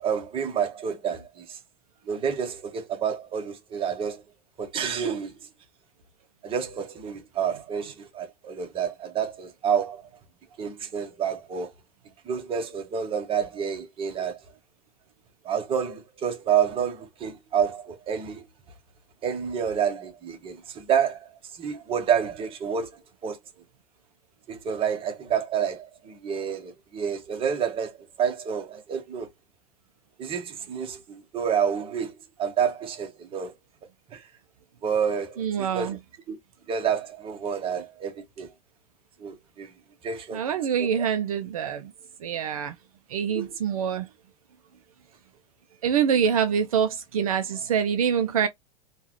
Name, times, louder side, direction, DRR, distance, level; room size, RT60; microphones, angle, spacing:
voice 1, 0.0-1.6 2.1-4.2 4.6-5.3 6.4-10.0 10.6-11.7 12.2-14.4 15.4-18.4 19.2-22.9 23.2-23.4 24.5-29.3 30.2-33.5 34.1-34.3 34.8-36.0 36.3-36.4 36.7-38.5 39.2-39.7 40.0-40.4 40.8-41.1 43.3-43.5 47.5-47.6, right 7 dB, 30° right, 1.0 m, -29 dB
voice 2, 35.4-36.0 40.3-41.9 42.2-42.8 43.1-44.1 45.8-48.5, right 7 dB, 65° right, 0.5 m, -25 dB
3.6 x 2.3 x 3.0 m
figure-of-eight pair, 85°, 19 cm